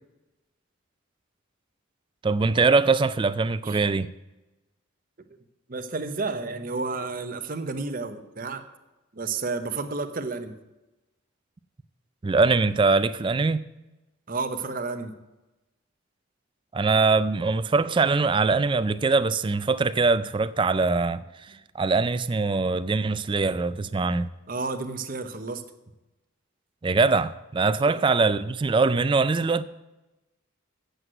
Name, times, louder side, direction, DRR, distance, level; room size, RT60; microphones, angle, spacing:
voice 1, 2.2-4.1 12.2-13.6 16.7-24.3 26.8-29.6, right 4 dB, 25° right, 0.3 m, -22 dB
voice 2, 5.7-8.6 9.1-10.5 14.3-15.1 24.5-25.6, right 3 dB, 40° right, 0.9 m, -31 dB
8.0 x 7.7 x 7.9 m
head